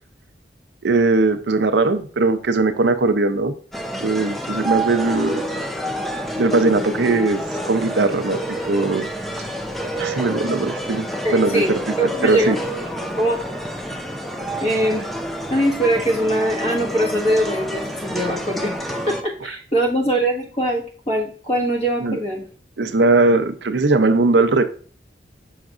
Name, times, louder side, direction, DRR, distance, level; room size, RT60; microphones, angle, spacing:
voice 1, 0.8-3.5 4.0-5.4 6.4-8.4 8.7-9.1 10.0-11.1 11.3-11.8 12.2-12.6 22.0-22.2 22.8-24.6, right 3 dB, 75° right, 9 dB, 0.6 m, -19 dB
sound 1, 3.7-19.2, equal, ahead, 0.5 m, -28 dB
voice 2, 11.2-11.7 12.0-12.5 12.8-12.9 13.2-13.4 14.6-15.0 15.5-18.7 19.1-22.4, right 1 dB, 40° left, -1 dB, 1.7 m, -22 dB
6.4 x 5.9 x 2.5 m, 0.42 s
head